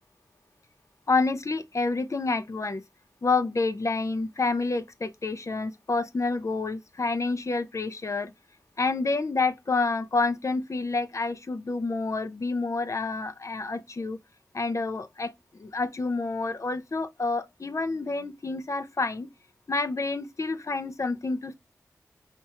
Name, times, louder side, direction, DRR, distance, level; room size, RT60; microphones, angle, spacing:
voice 1, 1.1-2.8 3.2-8.3 8.8-14.2 14.5-15.3 15.6-19.3 19.7-21.5, left 3 dB, 50° left, 0.6 m, -28 dB
4.3 x 3.4 x 2.9 m
cardioid pair, 40°, 7 cm